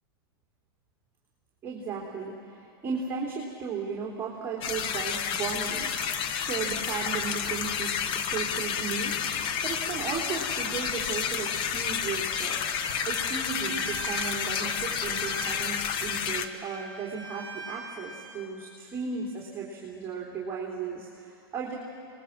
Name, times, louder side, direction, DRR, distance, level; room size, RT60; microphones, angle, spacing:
voice 1, 1.6-9.2 9.6-12.6 13.1-21.8, right 5 dB, 20° right, -4 dB, 3.2 m, -35 dB
sound 1, 4.6-16.5, left 7 dB, 40° left, 1.1 m, -30 dB
Bowed string instrument, 12.4-18.4, right 2 dB, 65° left, 6.4 m, -41 dB
25.5 x 20.0 x 7.3 m, 2.5 s
hypercardioid pair, 125°, 13 cm